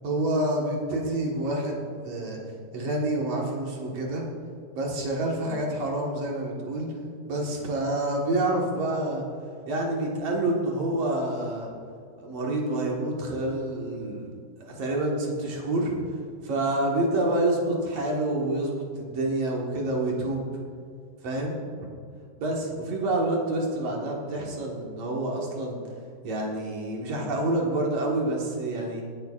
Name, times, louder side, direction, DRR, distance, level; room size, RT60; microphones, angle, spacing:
voice 1, 0.0-2.4 2.7-4.3 4.7-6.9 7.3-9.2 9.7-11.7 12.2-14.3 14.6-15.9 16.4-20.5 21.2-21.6 22.4-25.8 26.2-29.0, right 1 dB, 60° right, -2 dB, 1.7 m, -28 dB
20.5 x 9.7 x 2.5 m, 2.3 s
omnidirectional pair, 5.0 m